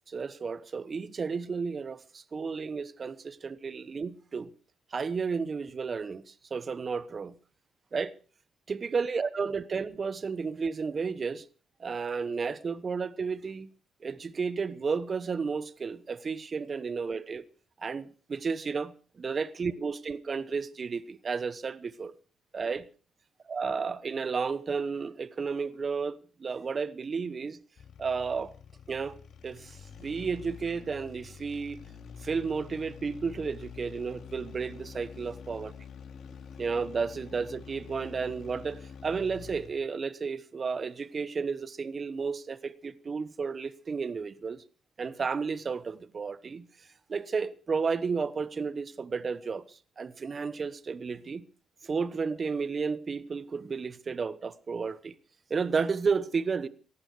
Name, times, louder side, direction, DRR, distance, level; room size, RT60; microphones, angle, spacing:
voice 1, 0.1-4.5 4.9-7.3 7.9-8.1 8.7-11.5 11.8-13.7 14.0-17.4 17.8-22.1 22.5-22.8 23.5-27.6 28.0-28.5 28.9-29.2 29.4-31.8 32.2-35.7 36.6-44.6 45.0-51.4 51.8-55.1 55.5-56.7, right 5 dB, 40° right, 1.0 m, -32 dB
sound 1, 27.8-39.9, left 6 dB, 65° left, 2.6 m, -47 dB
18.0 x 14.5 x 4.9 m
cardioid pair, 90°, 0 cm